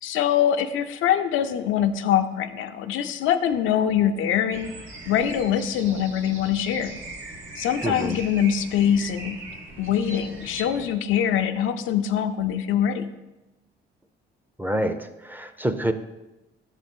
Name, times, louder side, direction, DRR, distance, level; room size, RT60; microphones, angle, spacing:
voice 1, 0.0-4.7 5.1-6.9 7.6-9.4 9.8-13.1, left 9 dB, 85° left, 7 dB, 0.5 m, -23 dB
sound 1, 4.5-10.9, right 2 dB, 85° right, 1.4 m, -40 dB
voice 2, 7.8-8.2 14.6-15.9, right 1 dB, 10° right, 9 dB, 0.5 m, -27 dB
6.5 x 4.1 x 6.1 m, 1.0 s
cardioid pair, 90°, 20 cm